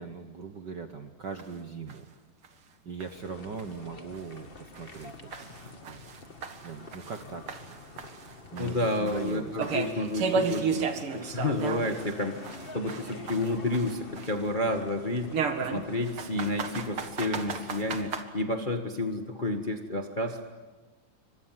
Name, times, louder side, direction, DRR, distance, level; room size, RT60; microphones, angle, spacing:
voice 1, 0.0-2.0 2.8-5.1 5.4-5.5 5.9-6.0 6.6-7.8 8.5-9.9, right 5 dB, 75° right, 6 dB, 1.0 m, -40 dB
sound 1, 1.4-1.5 1.9-2.0 2.4-2.5 3.0-3.1 3.6-3.7 4.1-4.2 4.7-7.2 7.5-12.1 12.4-14.5 15.3-18.2, right 5 dB, 45° right, 2.3 m, -33 dB
sound 2, 3.0-18.2, left 3 dB, 25° left, 1.3 m, -48 dB
voice 2, 8.6-10.9 11.1-12.4 12.7-15.4 15.7-20.5, left 2 dB, 60° left, 4 dB, 0.5 m, -30 dB
28.5 x 25.5 x 7.7 m, 1.3 s
omnidirectional pair, 3.8 m